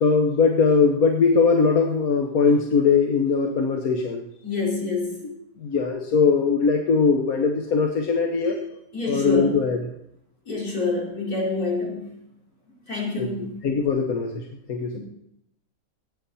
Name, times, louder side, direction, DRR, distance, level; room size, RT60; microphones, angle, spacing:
voice 1, 0.0-4.2 5.2-5.3 5.6-8.6 9.1-9.8 13.2-13.3 13.6-15.0, left 5 dB, 70° left, 2 dB, 1.6 m, -20 dB
voice 2, 4.4-5.2 8.9-9.6 10.5-12.1 12.9-13.6 14.9-15.0, left 3 dB, 90° left, -5 dB, 4.9 m, -27 dB
17.5 x 9.2 x 4.2 m, 0.76 s
omnidirectional pair, 1.6 m